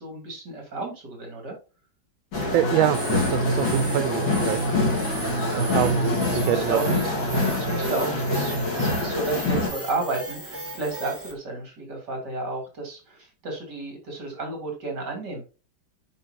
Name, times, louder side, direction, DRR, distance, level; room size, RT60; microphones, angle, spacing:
voice 1, 0.0-1.6 5.4-7.1 7.5-15.4, right 3 dB, 60° right, 2 dB, 3.6 m, -32 dB
sound 1, 2.3-9.7, left 1 dB, 75° left, 3.5 m, -25 dB
voice 2, 2.5-4.6 5.2-6.8, right 13 dB, 85° right, 11 dB, 1.4 m, -26 dB
sound 2, 2.9-11.3, right 1 dB, 10° right, 1.1 m, -36 dB
10.0 x 4.5 x 2.7 m, 0.31 s
omnidirectional pair, 2.1 m